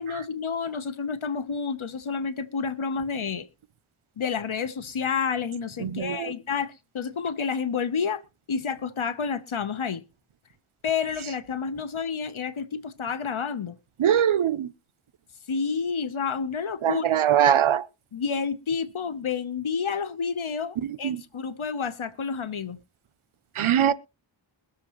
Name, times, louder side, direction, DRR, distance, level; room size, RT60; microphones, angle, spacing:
voice 1, 0.0-3.4 4.2-8.2 8.5-10.0 10.8-13.8 15.5-17.1 18.1-22.8, left 6 dB, 80° left, 1.0 m, -29 dB
voice 2, 5.8-6.3 14.0-14.7 16.8-17.9 21.0-21.2 23.6-23.9, right 9 dB, 85° right, 0.6 m, -22 dB
22.0 x 7.4 x 3.0 m
wide cardioid pair, 45°, 48 cm